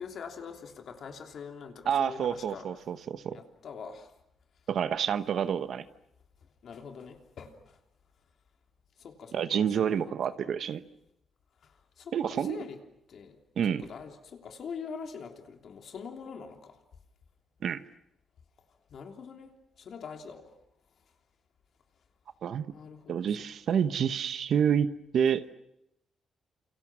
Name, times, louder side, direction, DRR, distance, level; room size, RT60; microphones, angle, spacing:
voice 1, 0.0-2.7 3.3-4.1 6.6-7.8 9.0-10.2 11.6-12.8 13.1-13.4 13.6-16.8 18.9-19.5 19.8-20.5 22.7-23.5 23.7-23.8, left 6 dB, 55° left, 4 dB, 3.2 m, -44 dB
voice 2, 1.9-3.4 4.7-5.9 9.3-10.8 12.1-12.6 13.6-13.8 17.6-17.8 22.4-22.7 23.1-25.4, right 8 dB, 60° right, 12 dB, 1.0 m, -28 dB
30.0 x 28.5 x 6.2 m, 0.82 s
cardioid pair, 140°, 0 cm